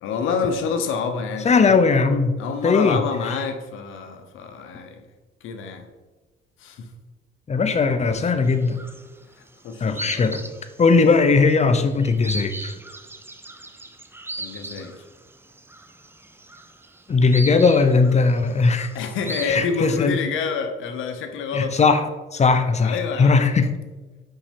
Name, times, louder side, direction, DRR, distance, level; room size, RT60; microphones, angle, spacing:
voice 1, 0.0-1.8 2.4-5.0 5.4-5.9 6.6-6.9 7.7-7.8 8.1-8.5 9.6-10.2 14.4-15.0 18.9-21.7 22.8-23.5, left 5 dB, 85° left, 6 dB, 0.9 m, -28 dB
voice 2, 1.4-2.4 2.6-3.3 7.5-8.8 9.8-10.4 10.8-12.7 17.1-18.9 19.4-20.2 21.5-23.8, left 4 dB, 35° left, 9 dB, 0.8 m, -19 dB
sound 1, 8.4-9.3 9.6-19.6, right 2 dB, 10° right, 0.6 m, -38 dB
5.8 x 5.5 x 5.2 m, 1.3 s
cardioid pair, 90°, 20 cm